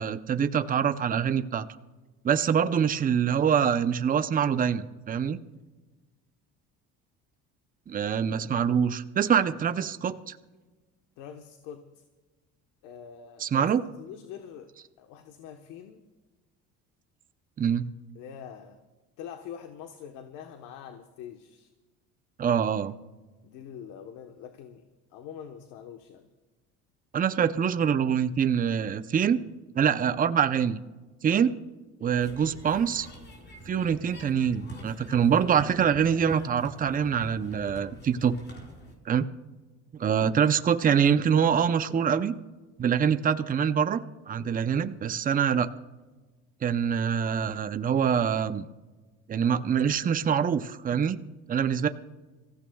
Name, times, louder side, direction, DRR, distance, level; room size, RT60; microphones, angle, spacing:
voice 1, 0.0-1.7 2.2-5.4 7.9-10.4 13.4-13.8 17.6-17.9 22.4-22.9 27.1-29.4 29.7-30.8 31.2-31.5 32.0-33.1 33.7-38.3 39.1-39.3 40.0-42.3 42.8-45.7 46.6-48.7 49.3-51.2 51.5-51.9, right 7 dB, 25° right, 11 dB, 0.7 m, -25 dB
voice 2, 11.2-12.0 12.8-13.7 14.0-14.7 15.0-16.0 18.1-18.8 19.2-21.7 23.4-26.3 40.0-40.2, left 8 dB, 85° left, 6 dB, 1.2 m, -44 dB
sound 1, 32.2-38.9, equal, 35° left, 4.9 m, -46 dB
26.0 x 15.5 x 2.3 m, 1.2 s
cardioid pair, 115°, 31 cm